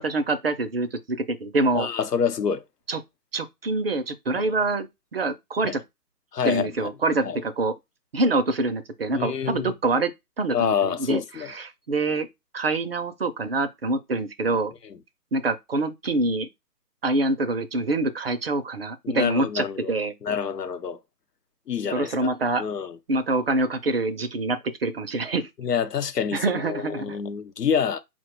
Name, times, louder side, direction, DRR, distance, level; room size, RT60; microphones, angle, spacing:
voice 1, 0.0-1.9 2.9-3.0 3.3-5.8 6.4-7.7 8.1-10.1 10.4-12.3 12.5-14.7 15.3-16.5 17.0-20.1 21.9-22.6 23.1-25.5 26.3-27.2, right 2 dB, 40° right, 0.5 m, -25 dB
voice 2, 1.7-2.6 4.4-4.5 5.6-5.8 6.3-6.9 7.2-7.4 9.1-9.7 10.5-11.5 14.8-15.0 19.0-19.9 20.2-21.0 21.7-22.3 22.6-23.0 25.6-28.0, left 7 dB, 80° left, 0.9 m, -27 dB
4.2 x 2.2 x 4.5 m
figure-of-eight pair, 140°, 47 cm